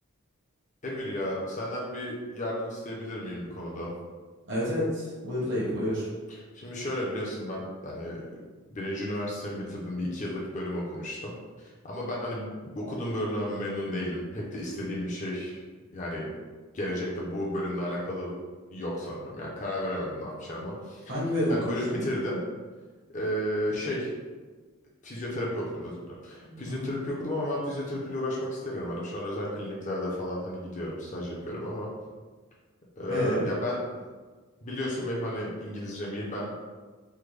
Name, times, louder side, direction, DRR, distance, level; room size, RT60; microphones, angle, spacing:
voice 1, 0.8-3.9 6.3-8.2 8.7-15.6 15.9-16.4 16.7-18.3 18.7-21.2 21.5-22.4 23.1-24.1 25.0-31.9 33.0-34.0 34.6-36.5, left 1 dB, 35° left, -4 dB, 0.6 m, -33 dB
voice 2, 4.5-6.1 21.1-22.0 26.4-26.9 33.1-33.4, equal, 55° right, -7 dB, 1.2 m, -29 dB
3.5 x 2.2 x 3.2 m, 1.4 s
head